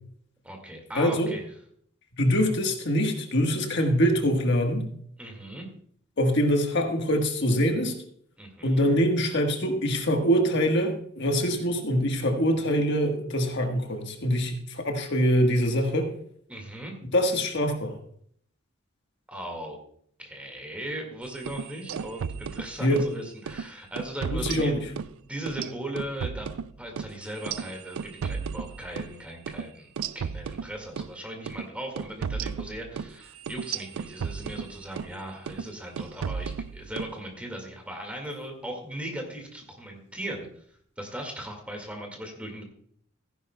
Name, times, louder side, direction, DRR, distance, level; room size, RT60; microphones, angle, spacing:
voice 1, 0.4-1.4 5.2-5.7 8.4-8.9 16.5-17.0 19.3-19.8 20.2-24.8 25.3-26.5 26.8-29.9 30.1-40.6 41.0-42.6, right 1 dB, 5° right, 2 dB, 1.9 m, -38 dB
voice 2, 0.9-1.3 2.2-4.8 6.2-7.9 8.6-16.1 17.1-17.9 22.8-23.0 24.3-24.8, equal, 60° left, 3 dB, 1.4 m, -24 dB
sound 1, 21.4-23.1 23.5-23.7 24.0-25.1 25.5-29.2 29.5-29.6 30.0-31.1 31.5-31.7 32.0-35.1 35.5-35.7 36.0-37.1, right 6 dB, 90° right, 0.4 m, -34 dB
15.5 x 10.0 x 2.2 m, 0.64 s
head